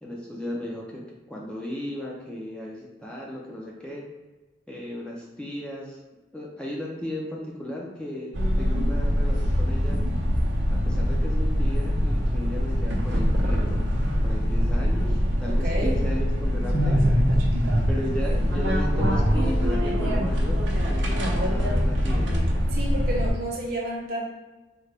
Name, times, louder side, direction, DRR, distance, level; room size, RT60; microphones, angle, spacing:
voice 1, 0.0-1.0 1.3-4.1 4.7-6.0 6.3-8.3 8.6-10.0 10.7-13.8 14.2-17.0 17.9-20.6 20.9-22.4, left 1 dB, 5° left, -4 dB, 0.4 m, -35 dB
sound 1, 8.3-23.3, equal, 80° right, 0.6 m, -23 dB
voice 2, 15.5-16.0 22.7-24.2, right 1 dB, 55° right, -2 dB, 0.8 m, -31 dB
3.7 x 2.1 x 3.3 m, 1.2 s
head